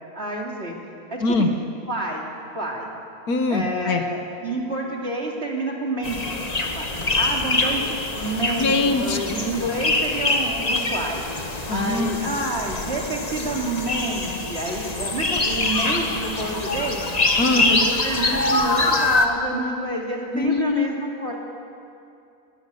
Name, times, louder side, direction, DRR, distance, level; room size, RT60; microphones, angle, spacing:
voice 1, 0.1-0.7 1.1-1.5 1.9-2.3 2.5-2.9 3.5-6.4 6.7-6.8 7.1-8.7 9.0-11.2 11.7-17.0 17.5-21.3, right 2 dB, 40° right, -1 dB, 3.0 m, -28 dB
voice 2, 3.3-4.0 8.6-9.4 11.7-12.2 17.4-17.8 20.3-20.9, left 3 dB, 70° left, 6 dB, 1.7 m, -22 dB
sound 1, 6.0-19.3, left 2 dB, 25° left, 1.3 m, -24 dB
22.0 x 18.5 x 6.9 m, 2.5 s
omnidirectional pair, 1.7 m